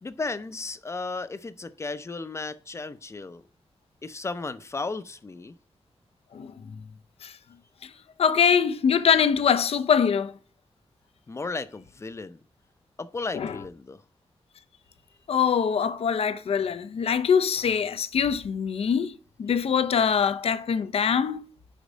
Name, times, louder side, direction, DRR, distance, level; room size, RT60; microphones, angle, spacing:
voice 1, 0.0-3.4 4.0-5.5 11.3-12.4 13.0-14.0, left 3 dB, 25° left, 0.5 m, -34 dB
voice 2, 8.2-10.3 13.3-13.5 15.3-21.4, left 7 dB, 75° left, 0.6 m, -23 dB
5.3 x 5.1 x 5.0 m
wide cardioid pair, 130°, 10 cm